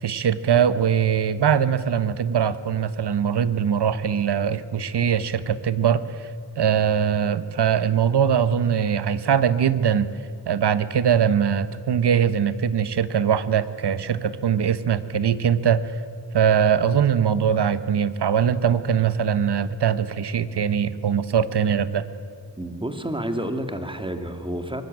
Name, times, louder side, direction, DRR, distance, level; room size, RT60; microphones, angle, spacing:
voice 1, 0.0-6.3 6.6-10.1 10.5-15.8 16.3-22.0, right 8 dB, 70° right, 14 dB, 1.2 m, -21 dB
voice 2, 22.6-24.8, right 1 dB, 10° right, 7 dB, 2.3 m, -29 dB
24.0 x 20.0 x 9.5 m, 2.2 s
wide cardioid pair, 95°, 41 cm